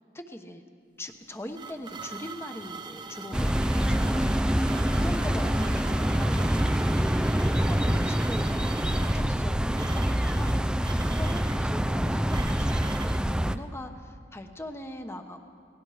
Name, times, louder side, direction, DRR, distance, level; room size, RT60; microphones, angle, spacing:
voice 1, 0.1-0.6 1.0-4.6 4.9-7.2 7.4-15.4, left 1 dB, 15° left, 6 dB, 1.1 m, -41 dB
sound 1, 1.1-13.2, right 5 dB, 25° right, 0.9 m, -43 dB
sound 2, 3.3-13.6, equal, 5° right, 0.4 m, -25 dB
Motorcycle, 3.6-12.0, equal, 90° left, 3.9 m, -50 dB
29.0 x 19.0 x 5.0 m, 2.3 s
head